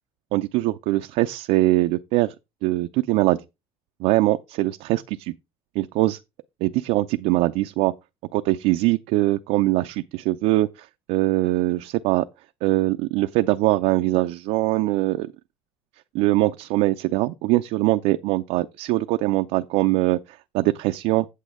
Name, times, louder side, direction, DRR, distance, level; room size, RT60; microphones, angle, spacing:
voice 1, 0.3-2.3 2.6-3.4 4.0-5.3 5.8-6.2 6.6-7.9 8.3-12.2 12.6-15.3 16.1-21.3, right 18 dB, 70° right, 0.5 m, -22 dB
8.4 x 7.5 x 3.6 m
supercardioid pair, 100°, 12 cm